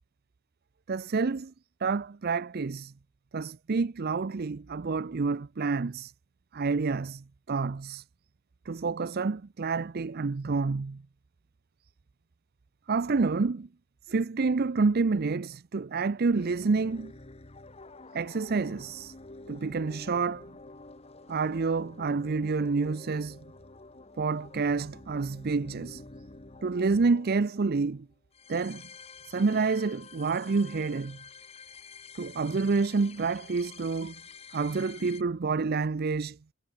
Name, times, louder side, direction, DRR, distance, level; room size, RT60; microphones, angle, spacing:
voice 1, 0.9-1.5 1.8-2.9 3.3-6.1 6.5-8.0 8.7-11.0 12.9-13.7 14.1-17.1 18.1-19.1 19.5-20.5 21.3-23.4 24.2-26.0 26.6-28.1 28.5-28.8 29.2-31.2 32.1-34.2 34.5-36.4, right 4 dB, 45° right, 0.5 m, -28 dB
sound 1, 16.3-35.2, left 3 dB, 30° left, 1.2 m, -49 dB
head